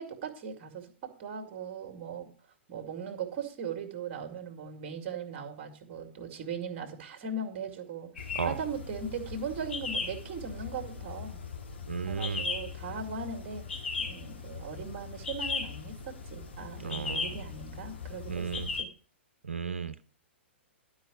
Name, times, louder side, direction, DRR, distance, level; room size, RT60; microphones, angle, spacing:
voice 1, 0.0-2.3 2.7-11.4 12.1-18.9, right 5 dB, 35° right, 2.3 m, -39 dB
sound 1, 8.2-18.8, left 4 dB, 65° left, 2.1 m, -38 dB
voice 2, 11.9-12.5 16.8-17.4 18.3-18.7 19.4-20.0, right 6 dB, 70° right, 0.8 m, -34 dB
12.0 x 4.8 x 7.4 m
figure-of-eight pair, 110°, 7 cm